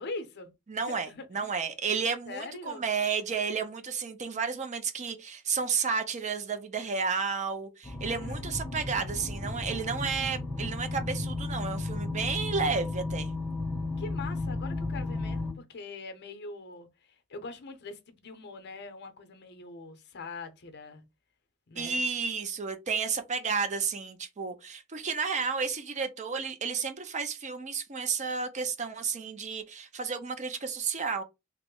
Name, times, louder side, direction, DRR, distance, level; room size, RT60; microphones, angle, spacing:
voice 1, 0.0-0.5 0.9-1.5 2.3-2.9 8.3-9.7 14.0-21.0 21.7-22.0, left 3 dB, 50° left, 0.6 m, -43 dB
voice 2, 0.7-13.3 21.8-31.2, right 5 dB, 35° right, 0.5 m, -32 dB
sound 1, 7.8-15.5, left 2 dB, 10° left, 0.6 m, -34 dB
3.0 x 2.0 x 3.6 m
head